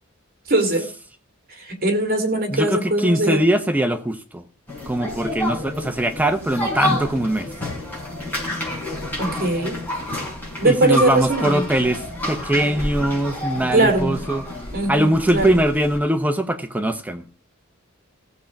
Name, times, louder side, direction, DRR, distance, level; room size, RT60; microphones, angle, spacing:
voice 1, 0.5-0.9 1.7-3.4 9.2-9.7 10.6-11.6 13.7-14.2 14.7-15.5, right 2 dB, 45° right, 2.5 m, -20 dB
voice 2, 2.5-4.4 4.9-7.5 10.6-14.4 14.9-17.2, right 1 dB, 10° right, 0.8 m, -21 dB
sound 1, 4.7-16.0, left 1 dB, 10° left, 6.2 m, -29 dB
16.0 x 7.2 x 5.2 m
head